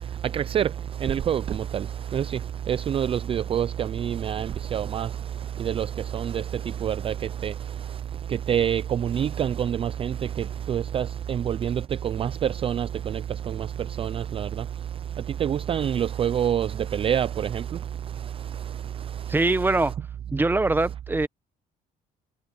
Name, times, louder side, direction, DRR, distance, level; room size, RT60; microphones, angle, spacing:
voice 1, 0.0-19.5, right 9 dB, 35° right, 0.4 m, -28 dB
voice 2, 19.3-19.9 20.3-21.3, right 2 dB, 10° right, 1.0 m, -23 dB
cardioid pair, 110°, 17 cm